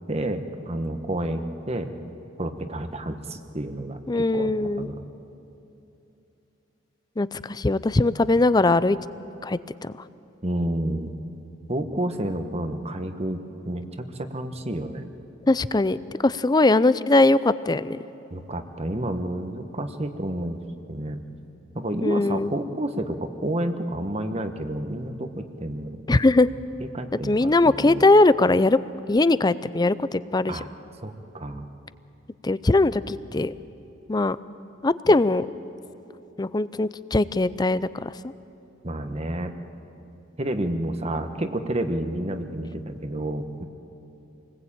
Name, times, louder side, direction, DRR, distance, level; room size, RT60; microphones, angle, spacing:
voice 1, 0.1-1.9 2.4-4.5 4.8-5.0 10.4-11.1 11.7-15.1 18.3-20.6 20.9-21.2 21.7-26.2 26.9-28.1 30.5-30.7 31.0-31.7 35.0-35.1 38.8-39.5 40.4-43.6, right 1 dB, 35° right, 7 dB, 1.3 m, -30 dB
voice 2, 4.1-4.9 7.2-9.0 9.4-9.9 15.5-16.0 16.2-18.0 22.0-22.5 26.1-26.5 27.2-28.8 29.1-30.6 32.4-33.5 34.1-34.4 34.8-35.5 36.4-38.1, left 2 dB, 20° left, 16 dB, 0.5 m, -20 dB
27.0 x 20.0 x 8.8 m, 2.9 s
head